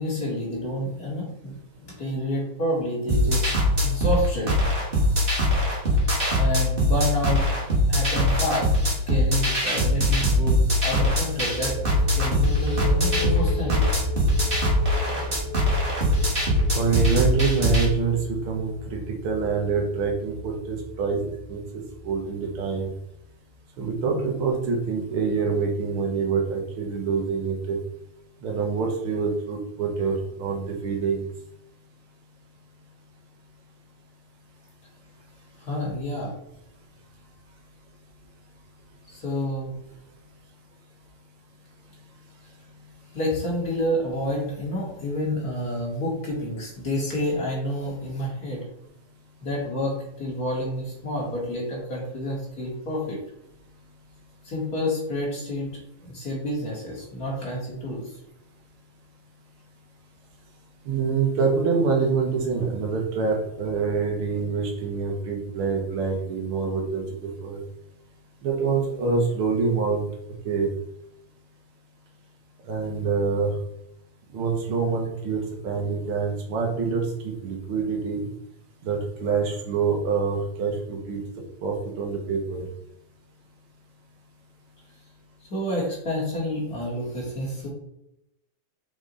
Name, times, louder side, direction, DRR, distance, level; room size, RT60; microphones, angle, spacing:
voice 1, 0.0-1.5 1.8-3.5 3.8-4.6 5.9-6.0 6.4-8.7 9.1-13.8 35.6-36.3 39.1-39.7 43.1-48.7 49.4-53.2 54.4-58.1 85.5-87.7, equal, 35° left, -4 dB, 1.8 m, -29 dB
sound 1, 3.1-17.9, left 1 dB, 25° right, 1.3 m, -22 dB
sound 2, 11.3-22.8, left 1 dB, 80° left, 3.0 m, -33 dB
voice 2, 16.7-21.6 22.0-22.9 23.8-27.8 28.4-31.2 60.8-67.0 67.4-67.6 68.4-70.1 70.4-70.7 72.7-73.5 74.3-78.3 78.8-81.2 81.6-82.6, right 5 dB, 65° right, 1 dB, 1.4 m, -26 dB
6.2 x 4.9 x 4.0 m, 0.80 s
omnidirectional pair, 4.1 m